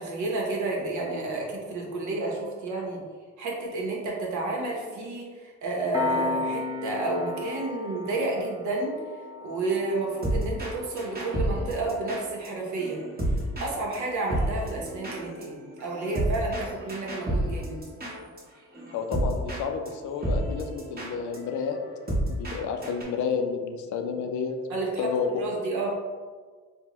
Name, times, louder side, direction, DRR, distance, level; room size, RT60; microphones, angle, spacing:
voice 1, 0.0-3.0 3.4-8.9 9.4-13.0 13.6-17.8 24.7-25.1 25.4-26.0, right 2 dB, 75° right, -2 dB, 0.9 m, -30 dB
Piano, 5.9-17.0, left 3 dB, 15° right, 0.4 m, -38 dB
sound 1, 10.2-10.7 11.0-13.7 13.9-14.0 14.3-18.4 18.7-19.6 19.9-20.0 20.2-22.6 22.8-23.0, right 1 dB, 30° right, 1.1 m, -30 dB
voice 2, 18.9-21.8 22.3-24.5 25.0-25.4, left 6 dB, 75° left, 5 dB, 0.5 m, -30 dB
3.6 x 2.2 x 2.9 m, 1.5 s
cardioid pair, 90°, 30 cm